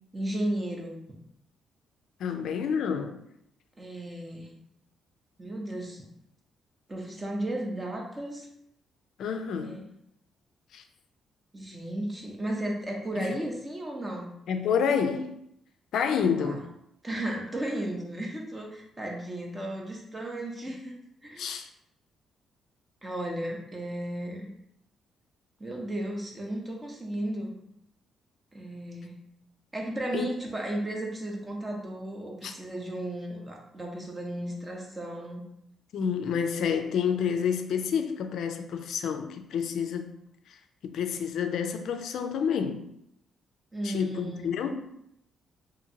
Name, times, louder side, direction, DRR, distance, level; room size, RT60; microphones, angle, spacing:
voice 1, 0.1-1.0 3.8-4.6 5.4-6.1 6.9-8.5 9.6-9.8 11.5-14.3 16.3-16.6 17.0-21.0 21.2-21.5 23.0-24.5 25.6-27.5 28.5-29.2 29.7-35.5 43.7-44.5, right 1 dB, 20° right, 0.6 m, -34 dB
voice 2, 2.2-3.2 9.2-9.8 10.7-10.8 13.1-13.3 14.5-15.4 15.9-16.7 21.4-21.7 30.1-30.3 32.4-32.5 35.9-40.2 40.8-42.9 43.8-44.9, left 7 dB, 70° left, 0.3 m, -29 dB
2.8 x 2.5 x 2.7 m
cardioid pair, 90°, 0 cm